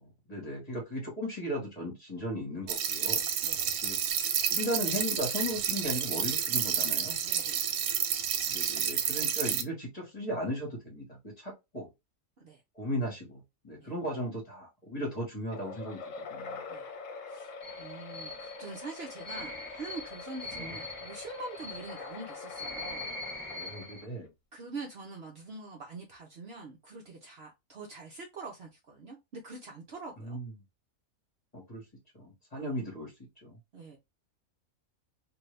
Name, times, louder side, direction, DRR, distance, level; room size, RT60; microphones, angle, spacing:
voice 1, 0.0-3.2 3.8-4.0 4.5-7.2 8.5-11.9 12.7-16.6 20.5-20.8 23.5-24.3 30.2-30.5 31.5-31.8 32.1-33.1 33.4-33.6, equal, 30° left, 1.3 m, -36 dB
sound 1, 2.7-9.6, right 8 dB, 80° right, 1.1 m, -30 dB
voice 2, 3.4-3.8 7.2-7.6 12.4-12.6 13.8-13.9 16.7-16.9 17.3-23.1 23.5-23.8 24.5-30.4 32.5-32.7 33.7-34.0, right 3 dB, 55° right, 0.8 m, -44 dB
sound 2, 15.5-24.3, left 4 dB, 70° left, 1.0 m, -44 dB
sound 3, 17.6-24.0, left 2 dB, 10° right, 0.4 m, -43 dB
2.6 x 2.6 x 3.2 m
omnidirectional pair, 1.5 m